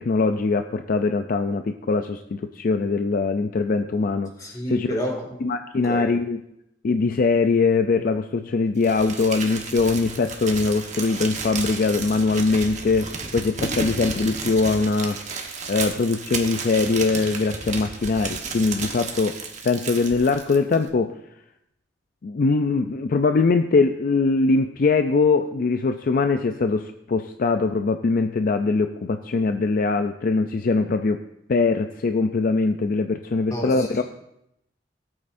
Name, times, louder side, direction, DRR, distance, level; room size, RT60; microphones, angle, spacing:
voice 1, 0.0-4.3 4.7-4.9 5.4-6.4 6.8-19.4 19.6-21.2 22.2-31.2 31.5-34.0, left 4 dB, 50° left, 8 dB, 0.4 m, -22 dB
voice 2, 4.4-5.5 5.8-6.1 33.5-34.0, equal, 20° left, 0 dB, 2.1 m, -29 dB
Crumpling crinkling, 8.8-20.9, right 4 dB, 40° right, 1.3 m, -33 dB
17.5 x 8.6 x 2.6 m, 0.79 s
head